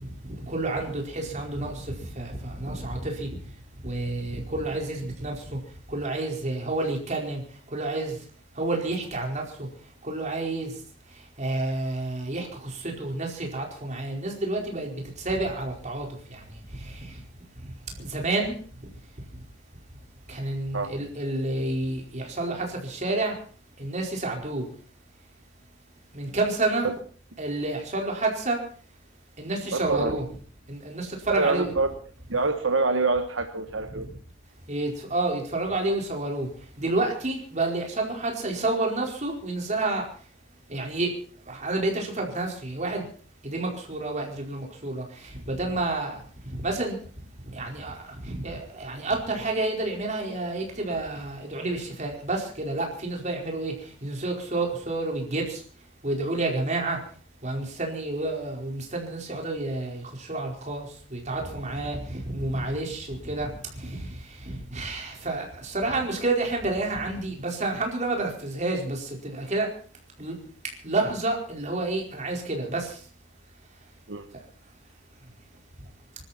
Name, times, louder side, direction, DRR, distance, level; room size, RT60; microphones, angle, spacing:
voice 1, 0.0-3.3 3.8-5.6 5.9-7.4 7.7-8.2 8.6-9.7 10.0-10.7 11.4-17.1 18.0-18.6 20.3-23.4 23.8-24.7 26.1-26.9 27.4-28.6 29.4-30.3 30.7-31.7 34.7-36.5 36.8-40.0 40.7-41.1 41.5-43.0 43.4-46.2 46.4-47.0 47.5-53.7 54.0-55.6 56.0-57.0 57.4-63.5 63.7-64.1 64.4-69.7 70.2-70.3 70.6-73.0, right 2 dB, 40° right, 4.7 m, -29 dB
voice 2, 29.7-30.2 31.3-31.9 32.3-34.1 74.1-74.3, right 3 dB, 80° right, 1.3 m, -25 dB
24.5 x 13.0 x 4.3 m
head